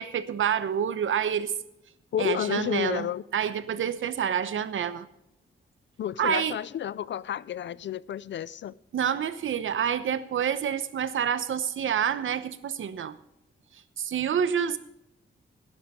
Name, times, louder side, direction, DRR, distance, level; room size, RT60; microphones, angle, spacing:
voice 1, 0.0-1.5 2.2-3.1 3.3-5.1 6.2-6.6 8.9-13.2 14.0-14.8, right 8 dB, 75° right, 0.9 m, -28 dB
voice 2, 2.1-3.2 6.0-8.8, left 10 dB, 60° left, 0.5 m, -31 dB
17.0 x 11.0 x 3.7 m
wide cardioid pair, 165°, 21 cm